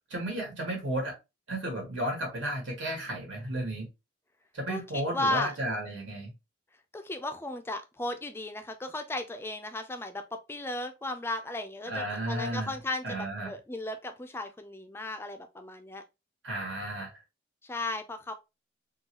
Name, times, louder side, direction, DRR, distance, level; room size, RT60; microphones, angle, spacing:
voice 1, 0.1-1.2 1.5-3.9 4.5-6.3 11.9-12.7 13.0-13.5 16.4-17.1, right 1 dB, 90° right, 1.9 m, -33 dB
voice 2, 4.7-5.5 6.9-16.0 17.6-18.3, left 2 dB, 10° left, 0.3 m, -35 dB
3.8 x 2.3 x 2.8 m
head